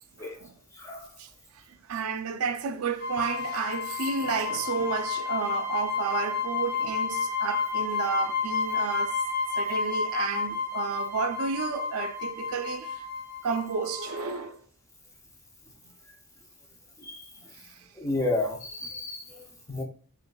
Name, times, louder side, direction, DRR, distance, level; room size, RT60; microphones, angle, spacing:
voice 1, 0.2-0.5 1.2-1.3 1.5-9.2 9.6-13.0 13.4-14.6 17.5-17.9, right 5 dB, 75° right, 0.4 m, -32 dB
voice 2, 0.7-1.1 17.0-17.2 18.0-19.8, left 2 dB, 15° left, 0.5 m, -31 dB
sound 1, 3.0-14.4, left 5 dB, 50° left, 1.3 m, -31 dB
6.3 x 2.4 x 2.2 m
head